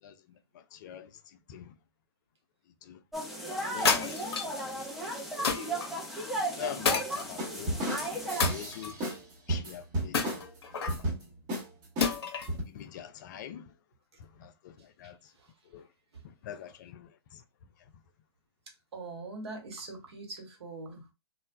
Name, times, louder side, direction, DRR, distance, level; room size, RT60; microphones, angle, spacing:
voice 1, 0.0-1.1 1.5-1.7 2.8-3.0 3.7-4.9 5.5-5.8 6.5-7.8 8.5-9.0 9.5-10.5 12.7-13.7 14.2-15.2 15.7-15.9 16.2-17.4, left 9 dB, 45° left, 0.4 m, -44 dB
sound 1, 3.1-8.5, right 1 dB, ahead, 0.6 m, -35 dB
sound 2, 3.8-4.6 5.4-5.9 6.8-7.7 8.4-9.1 10.1-11.0 12.0-12.6, left 5 dB, 65° left, 0.7 m, -30 dB
sound 3, 7.4-9.2 9.5-10.5 10.9-11.2 11.5-11.7 12.0-12.6, right 1 dB, 30° right, 1.1 m, -33 dB
voice 2, 18.9-21.1, right 3 dB, 70° right, 1.0 m, -42 dB
3.0 x 2.2 x 2.2 m
hypercardioid pair, 125°, 14 cm